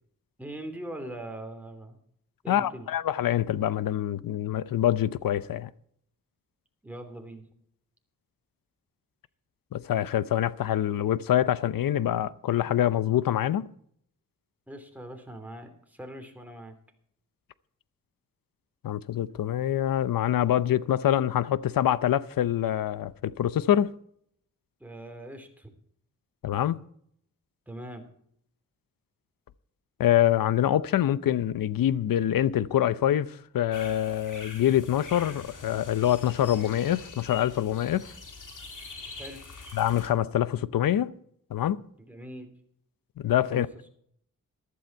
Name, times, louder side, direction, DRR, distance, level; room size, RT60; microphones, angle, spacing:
voice 1, 0.4-2.0 2.4-2.9 6.8-7.4 14.7-16.8 24.8-25.7 27.7-28.0 39.2-39.4 42.0-42.5 43.5-43.6, right 1 dB, 5° right, 3.1 m, -41 dB
voice 2, 2.5-5.7 9.7-13.7 18.8-23.9 26.4-26.8 30.0-38.1 39.7-41.1 41.5-41.8 43.2-43.7, left 11 dB, 90° left, 0.7 m, -25 dB
sound 1, 33.7-40.1, left 4 dB, 70° left, 3.4 m, -44 dB
14.5 x 11.5 x 4.5 m
cardioid pair, 75°, 33 cm